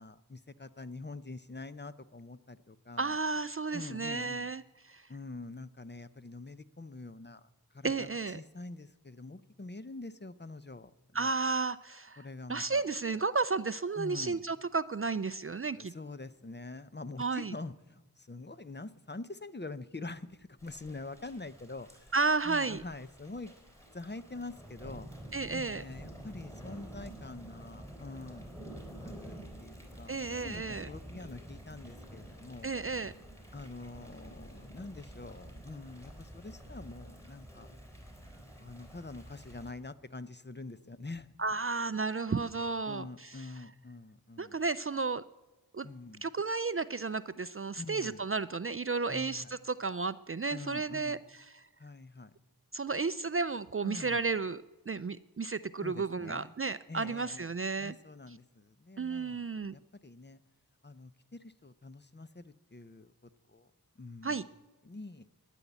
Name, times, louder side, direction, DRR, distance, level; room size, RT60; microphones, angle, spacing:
voice 1, 0.0-3.2 3.7-4.5 5.1-7.5 7.7-11.3 12.2-12.8 14.0-14.5 15.7-22.1 22.4-23.5 23.9-25.1 25.5-28.5 28.9-32.7 33.5-37.7 38.6-41.3 42.9-44.6 45.8-46.3 47.8-48.2 49.1-49.5 50.5-51.2 51.8-52.3 53.8-54.2 55.8-56.6 56.9-57.5 57.8-59.5 59.7-60.4 60.8-63.1 63.5-63.7 64.0-64.4 64.8-65.3, left 3 dB, 30° left, 13 dB, 0.6 m, -45 dB
voice 2, 3.0-4.6 4.9-5.0 7.8-8.4 11.1-12.2 12.5-15.9 17.2-17.5 22.1-22.8 25.3-25.8 30.1-30.9 32.6-33.1 41.4-43.3 44.4-45.2 45.7-45.9 46.2-51.2 51.5-51.6 52.7-54.6 54.9-57.9 59.0-59.7 64.2-64.4, right 4 dB, 35° right, 15 dB, 0.4 m, -33 dB
Thunder / Rain, 20.6-39.7, right 1 dB, 5° left, 3.8 m, -49 dB
13.0 x 10.0 x 8.2 m, 1.1 s
wide cardioid pair, 45°, 38 cm